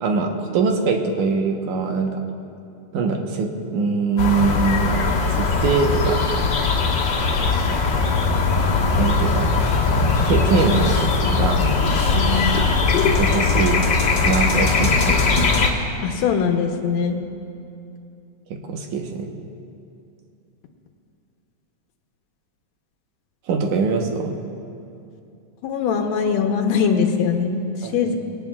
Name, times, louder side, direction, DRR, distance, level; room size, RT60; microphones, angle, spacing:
voice 1, 0.0-2.2 2.9-6.2 9.0-9.5 10.3-10.9 11.3-11.7 13.2-13.8 14.2-15.2 18.7-19.3 23.5-24.3 27.8-28.1, right 4 dB, 85° right, 3 dB, 2.6 m, -22 dB
sound 1, 4.2-15.7, left 4 dB, 45° left, 1.8 m, -20 dB
voice 2, 12.1-12.6 16.0-17.2 25.6-27.7 27.9-28.1, left 6 dB, 70° left, 4 dB, 2.0 m, -21 dB
22.0 x 18.0 x 2.4 m, 2.7 s
omnidirectional pair, 3.4 m